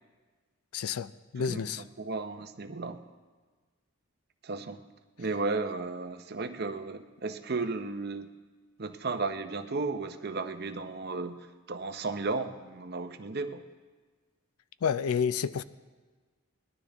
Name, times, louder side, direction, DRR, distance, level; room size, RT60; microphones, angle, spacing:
voice 1, 0.7-1.8 14.8-15.6, left 7 dB, 90° left, 15 dB, 0.4 m, -30 dB
voice 2, 1.4-3.0 4.4-4.8 5.2-8.3 8.8-13.6, right 3 dB, 45° right, 8 dB, 0.7 m, -34 dB
20.0 x 12.0 x 3.5 m, 1.4 s
head